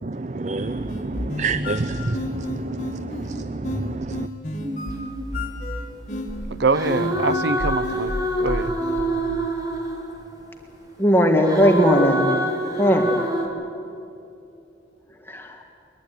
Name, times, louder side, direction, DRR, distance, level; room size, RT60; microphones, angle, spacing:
voice 1, 0.0-4.3, right 3 dB, 40° right, 14 dB, 0.5 m, -29 dB
sound 1, 0.6-9.0, left 1 dB, 45° left, 2.3 m, -31 dB
sound 2, 4.6-6.1 6.7-10.5 11.4-13.5, right 1 dB, 20° right, 2.9 m, -26 dB
voice 2, 6.5-8.7, right 3 dB, 75° right, 16 dB, 0.8 m, -24 dB
voice 3, 11.0-12.5 12.8-13.1 15.3-15.6, equal, 15° left, 2 dB, 1.9 m, -18 dB
22.0 x 21.5 x 9.5 m, 2.7 s
head